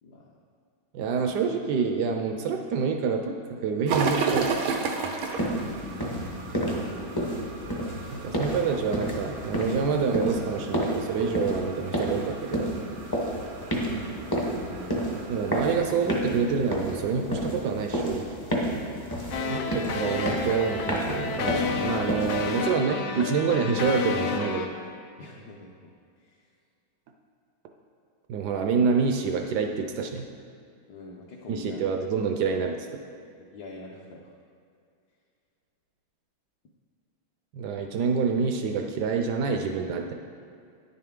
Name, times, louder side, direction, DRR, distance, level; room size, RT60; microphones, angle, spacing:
voice 1, 0.0-0.4 1.0-1.4 5.5-7.2 13.7-14.9 19.3-20.4 25.2-26.5 30.9-31.8 33.5-34.4, left 2 dB, 65° left, -2 dB, 1.1 m, -45 dB
voice 2, 0.9-4.5 8.1-12.7 15.3-18.2 19.5-19.6 19.9-24.7 28.3-30.2 31.5-32.9 37.5-40.1, right 5 dB, 70° right, 4 dB, 1.0 m, -27 dB
sound 1, 3.9-15.7, right 5 dB, 90° right, 1.5 m, -34 dB
sound 2, 5.4-22.6, equal, 25° left, 0.4 m, -31 dB
sound 3, 19.3-24.7, left 4 dB, 80° left, 1.5 m, -30 dB
9.8 x 6.7 x 3.6 m, 2.4 s
omnidirectional pair, 2.2 m